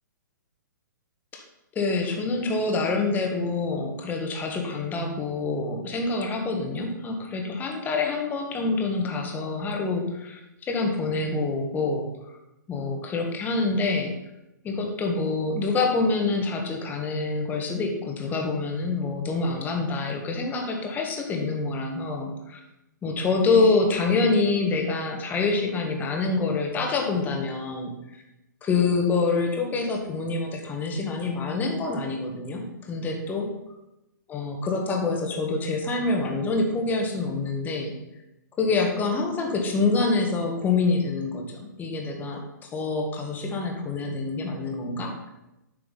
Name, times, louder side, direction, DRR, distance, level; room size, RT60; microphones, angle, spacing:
voice 1, 1.7-10.4 10.7-12.1 12.7-14.1 14.6-22.6 23.0-27.9 28.6-33.5 34.3-37.9 38.6-45.3, left 3 dB, 15° left, 3 dB, 1.5 m, -26 dB
9.3 x 6.5 x 4.0 m, 0.92 s
figure-of-eight pair, 120°, 10 cm